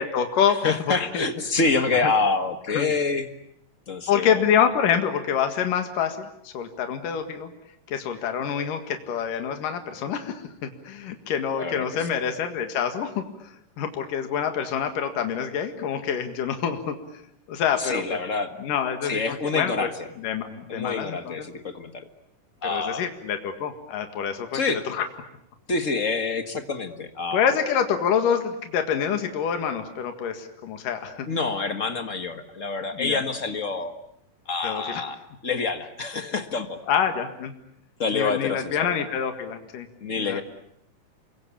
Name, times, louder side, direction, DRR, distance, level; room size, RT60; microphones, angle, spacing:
voice 1, 0.0-1.3 1.9-2.1 2.7-2.9 4.1-7.5 7.9-13.2 13.8-17.0 17.5-18.2 18.6-19.9 20.2-21.5 22.6-25.1 27.3-31.3 32.9-33.2 34.6-35.0 36.9-37.5 38.1-39.9 40.2-40.4, left 8 dB, 75° left, 6 dB, 3.5 m, -26 dB
voice 2, 0.6-3.3 3.9-4.5 11.6-12.1 17.8-18.5 19.0-20.1 20.7-22.0 22.6-23.0 24.5-24.8 25.7-27.4 31.3-33.9 34.5-35.2 35.4-36.8 38.0-38.9 40.0-40.4, left 4 dB, 40° left, 8 dB, 1.1 m, -27 dB
28.5 x 24.0 x 8.5 m, 0.74 s
omnidirectional pair, 3.8 m